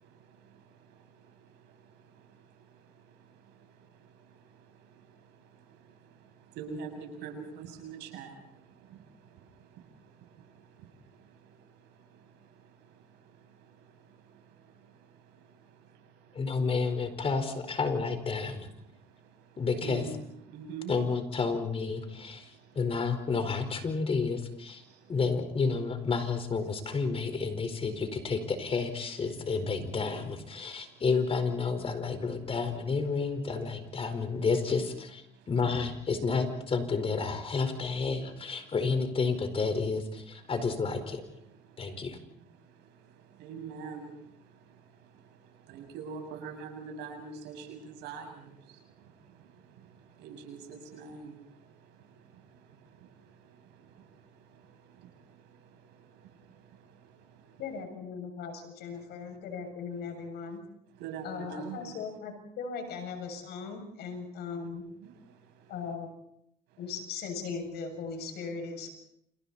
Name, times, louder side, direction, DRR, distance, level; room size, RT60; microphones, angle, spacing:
voice 1, 6.6-8.3 19.8-20.1 20.5-20.9 43.4-44.1 45.7-48.2 50.2-51.3 61.0-61.9, right 6 dB, 90° right, 3 dB, 7.7 m, -41 dB
voice 2, 16.3-18.7 19.6-20.1 20.9-24.8 25.1-41.2 41.8-42.2, left 4 dB, 35° left, 8 dB, 4.7 m, -30 dB
voice 3, 57.6-60.6 61.2-64.8 65.7-66.1 66.8-68.9, left 5 dB, 75° left, 5 dB, 7.3 m, -38 dB
30.0 x 27.5 x 4.3 m, 0.75 s
cardioid pair, 110°, 17 cm